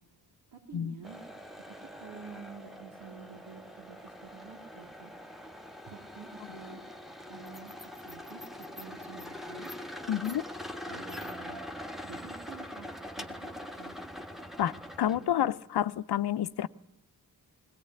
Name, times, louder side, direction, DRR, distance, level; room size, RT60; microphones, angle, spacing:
voice 1, 0.5-1.2 1.8-5.1 5.9-6.8 7.3-9.7 10.9-11.6 12.0-14.0 14.7-15.5, right 5 dB, 90° right, 3.5 m, -49 dB
sound 1, 1.0-15.4, equal, ahead, 1.5 m, -43 dB
voice 2, 10.1-10.4 14.6-16.7, left 11 dB, 80° left, 0.7 m, -29 dB
20.0 x 17.5 x 9.8 m
cardioid pair, 45°, 38 cm